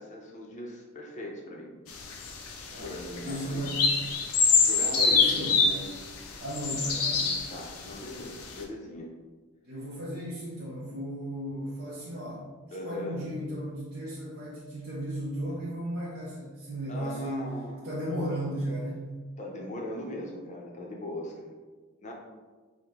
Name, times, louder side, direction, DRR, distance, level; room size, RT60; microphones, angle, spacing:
voice 1, 0.0-1.7 2.8-3.6 4.6-5.9 7.2-9.1 12.7-13.2 16.9-18.3 19.4-21.5 22.0-22.1, left 1 dB, 30° left, -1 dB, 0.6 m, -39 dB
sound 1, 1.9-7.9 8.4-8.5, left 5 dB, 80° left, 0.6 m, -26 dB
voice 2, 3.2-4.1 5.1-5.6 6.4-7.2 9.6-12.5 12.8-17.6 17.8-19.2, right 1 dB, 45° right, -7 dB, 0.6 m, -35 dB
4.6 x 2.1 x 3.6 m, 1.4 s
head